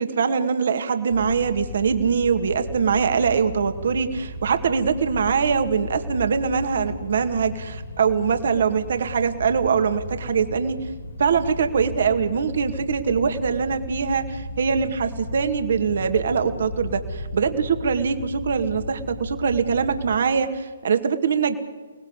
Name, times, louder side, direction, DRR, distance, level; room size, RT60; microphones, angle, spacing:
voice 1, 0.0-10.8 11.2-21.6, right 6 dB, 60° right, 8 dB, 2.2 m, -23 dB
sound 1, 1.1-20.2, left 2 dB, 65° left, 3.0 m, -35 dB
29.0 x 19.0 x 8.3 m, 1.5 s
figure-of-eight pair, 130°, 0 cm